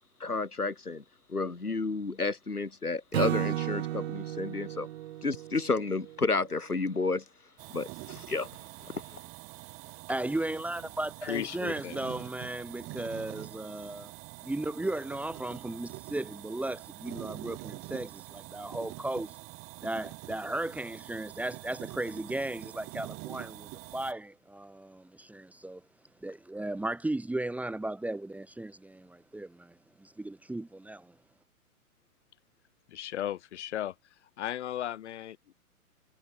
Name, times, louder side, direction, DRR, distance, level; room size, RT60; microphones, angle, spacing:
voice 1, 0.2-1.0 1.3-4.9 5.2-7.2 7.7-8.5 8.8-9.2, left 3 dB, 80° left, 7.3 m, -31 dB
Acoustic guitar / Strum, 3.1-6.5, right 14 dB, 45° right, 6.8 m, -34 dB
sound 1, 7.6-24.1, right 28 dB, 30° right, 4.4 m, -45 dB
voice 2, 10.1-14.1 14.4-19.4 19.8-25.8 26.2-29.7 30.0-31.1, right 1 dB, 5° right, 2.6 m, -36 dB
voice 3, 11.2-12.0 32.9-33.9 34.4-35.5, left 11 dB, 50° left, 5.0 m, -35 dB
figure-of-eight pair, 115°, 45 cm